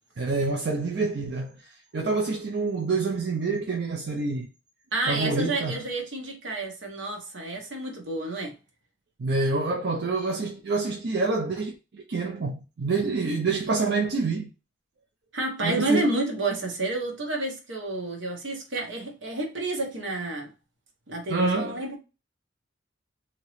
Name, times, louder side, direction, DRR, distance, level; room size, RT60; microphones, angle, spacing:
voice 1, 0.2-4.5 5.1-5.8 9.2-14.5 15.6-16.1 21.3-21.8, right 3 dB, 60° right, 0.5 m, -27 dB
voice 2, 4.9-8.5 15.3-20.5 21.1-22.0, right 2 dB, 80° right, 1.1 m, -30 dB
3.0 x 2.8 x 3.1 m
head